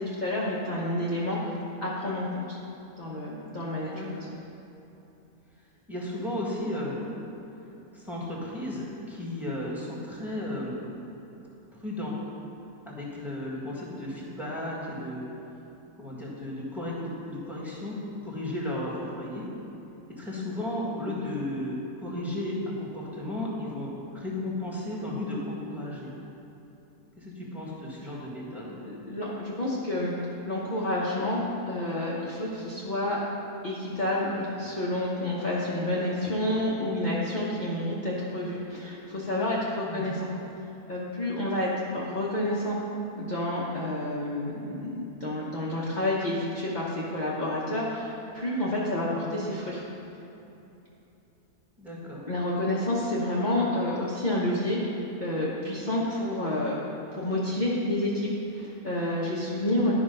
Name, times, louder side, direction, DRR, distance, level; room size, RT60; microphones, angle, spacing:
voice 1, 0.0-1.5 1.8-2.6 3.0-3.9 28.8-30.1 30.4-33.2 33.6-40.3 40.9-42.8 43.2-49.8 52.3-54.9 55.2-56.8 57.1-59.9, left 1 dB, 35° left, -7 dB, 1.0 m, -29 dB
voice 2, 3.9-4.3 5.9-7.0 7.9-10.8 11.7-12.2 12.8-15.2 16.0-17.9 18.2-19.5 20.2-26.1 27.2-28.8 39.8-40.2 49.1-49.4 51.8-52.2, left 1 dB, ahead, -5 dB, 1.6 m, -34 dB
11.5 x 5.0 x 5.4 m, 3.0 s
omnidirectional pair, 1.6 m